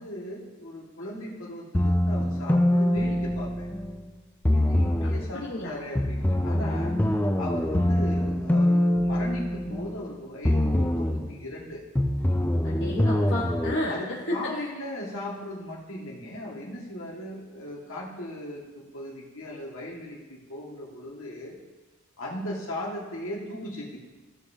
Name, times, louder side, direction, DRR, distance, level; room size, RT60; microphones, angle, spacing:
voice 1, 0.0-3.7 4.5-7.0 7.4-11.8 13.9-21.6 22.2-24.0, left 1 dB, 75° left, -3 dB, 2.0 m, -37 dB
sound 1, 1.7-4.0 4.4-5.3 6.0-10.1 10.4-11.3 12.0-13.7, left 1 dB, 10° left, 0.4 m, -24 dB
voice 2, 5.0-5.7 12.6-14.4, left 1 dB, 60° left, -6 dB, 1.4 m, -32 dB
15.5 x 5.8 x 2.8 m, 1.3 s
head